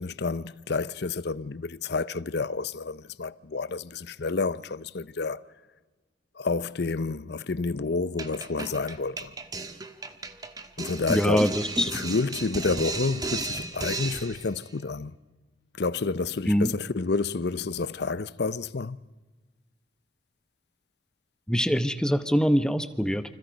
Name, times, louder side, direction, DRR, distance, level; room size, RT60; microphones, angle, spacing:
voice 1, 0.0-5.4 6.4-9.3 10.8-11.5 11.9-15.2 15.8-19.0, left 4 dB, 60° left, 0.7 m, -29 dB
sound 1, 8.2-14.5, right 2 dB, 20° right, 1.4 m, -34 dB
voice 2, 11.1-11.9 16.5-16.7 21.5-23.2, equal, 5° left, 0.9 m, -24 dB
29.0 x 26.0 x 5.2 m
head